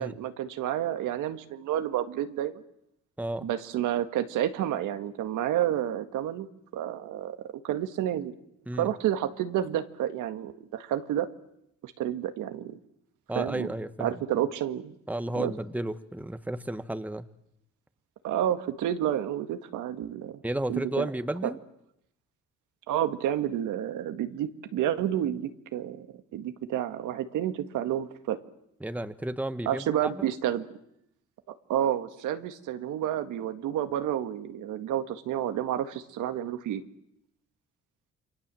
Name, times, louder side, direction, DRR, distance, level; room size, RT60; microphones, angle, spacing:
voice 1, 0.0-2.6 3.4-6.5 6.7-7.4 7.6-8.3 8.8-11.3 11.8-12.8 13.4-13.7 14.0-14.9 15.3-15.5 18.2-20.4 20.7-21.1 21.4-21.5 22.9-26.1 26.3-28.4 29.7-30.7 31.7-36.8, right 11 dB, 90° right, 9 dB, 1.9 m, -30 dB
voice 2, 3.2-3.5 8.7-8.9 13.3-14.1 15.1-17.3 20.4-21.6 28.8-30.3, right 1 dB, 5° right, 11 dB, 1.3 m, -33 dB
29.0 x 24.0 x 7.7 m, 0.78 s
cardioid pair, 90°, 30 cm